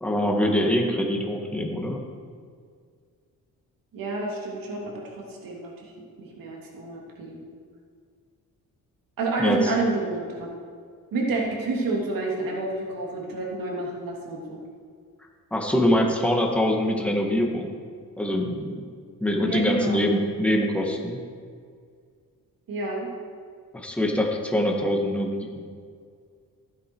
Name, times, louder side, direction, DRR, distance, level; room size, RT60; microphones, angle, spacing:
voice 1, 0.0-2.0 9.4-9.7 15.5-17.8 18.2-18.8 19.2-21.2 23.7-25.7, left 1 dB, 5° left, 0 dB, 1.7 m, -24 dB
voice 2, 3.9-5.9 6.2-7.4 9.2-10.5 11.1-14.6 19.5-20.1 22.7-23.1, right 3 dB, 70° right, -2 dB, 2.9 m, -29 dB
15.5 x 9.5 x 4.6 m, 2.1 s
cardioid pair, 125°, 35 cm